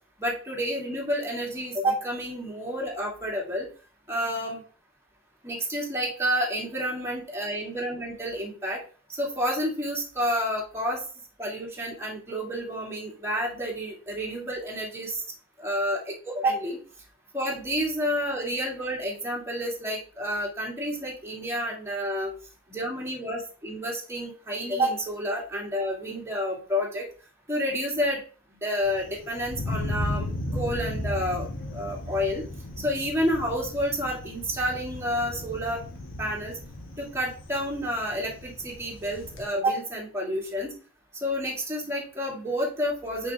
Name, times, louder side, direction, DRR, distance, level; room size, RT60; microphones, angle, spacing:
voice 1, 0.2-3.7 4.1-4.6 5.4-8.8 9.1-11.0 11.4-15.2 15.6-16.8 17.3-22.3 22.7-27.0 27.5-28.2 28.6-31.5 31.7-32.4 32.8-35.8 36.2-36.5 37.0-40.7 41.2-43.3, equal, 15° right, -3 dB, 2.4 m, -29 dB
Thunder, 28.8-39.5, left 1 dB, 70° left, 1.5 m, -35 dB
5.9 x 5.7 x 3.6 m, 0.39 s
head